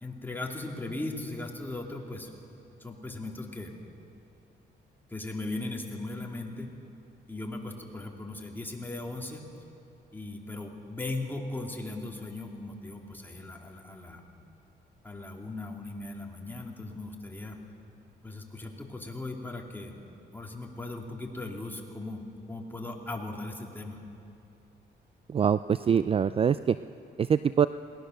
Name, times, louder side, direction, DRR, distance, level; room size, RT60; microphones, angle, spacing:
voice 1, 0.0-2.3 2.8-3.7 5.1-6.7 7.3-9.5 10.1-14.2 15.0-17.6 18.2-20.0 20.3-24.0, left 2 dB, 10° left, 0 dB, 2.9 m, -38 dB
voice 2, 25.3-26.8 27.2-27.7, right 7 dB, 30° right, 14 dB, 0.4 m, -24 dB
22.0 x 18.5 x 6.6 m, 2.8 s
cardioid pair, 95°, 18 cm